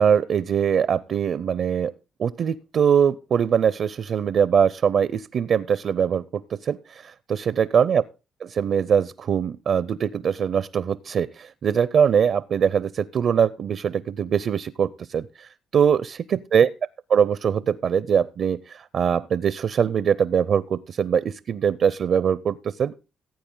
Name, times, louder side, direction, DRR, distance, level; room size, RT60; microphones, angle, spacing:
voice 1, 0.0-1.9 2.2-8.0 8.4-16.7 17.1-22.9, right 7 dB, 60° right, 19 dB, 0.5 m, -22 dB
15.0 x 8.5 x 3.8 m, 0.30 s
cardioid pair, 90°, 0 cm